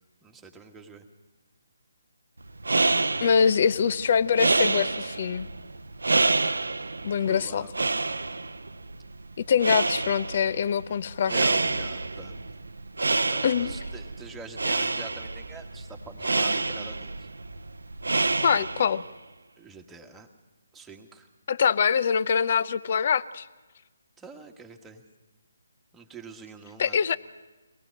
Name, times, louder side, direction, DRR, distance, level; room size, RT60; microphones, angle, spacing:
voice 1, 0.2-1.0 7.2-7.9 11.3-12.4 13.3-17.3 19.6-20.3 20.7-21.3 24.2-25.0 25.9-27.2, right 4 dB, 5° right, 2 dB, 1.4 m, -45 dB
sound 1, 2.4-19.1, right 3 dB, 85° right, 0.7 m, -28 dB
voice 2, 3.2-5.5 7.0-7.6 9.4-11.3 13.4-13.7 18.4-19.0 21.5-23.5 26.8-27.2, left 7 dB, 45° left, 18 dB, 0.6 m, -24 dB
23.5 x 18.5 x 6.5 m, 1.2 s
figure-of-eight pair, 150°, 0 cm